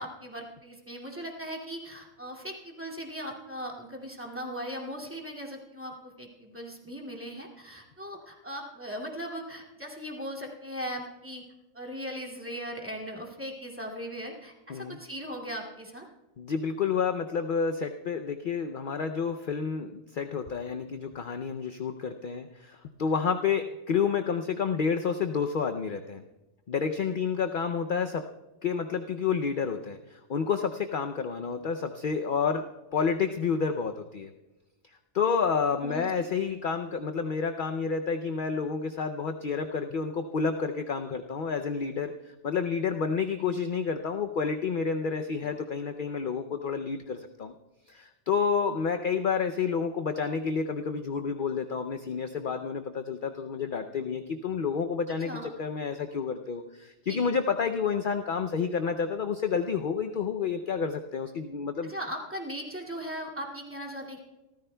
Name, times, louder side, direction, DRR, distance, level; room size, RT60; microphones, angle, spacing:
voice 1, 0.0-11.4 11.7-16.1 31.4-31.5 35.7-36.3 55.2-55.5 57.1-57.3 61.8-64.2, equal, 10° right, -1 dB, 2.3 m, -38 dB
voice 2, 16.4-26.2 26.7-28.2 28.6-32.6 32.9-34.3 35.1-47.5 47.9-61.9, left 6 dB, 55° left, 6 dB, 0.6 m, -29 dB
27.5 x 14.0 x 2.2 m, 1.1 s
omnidirectional pair, 1.4 m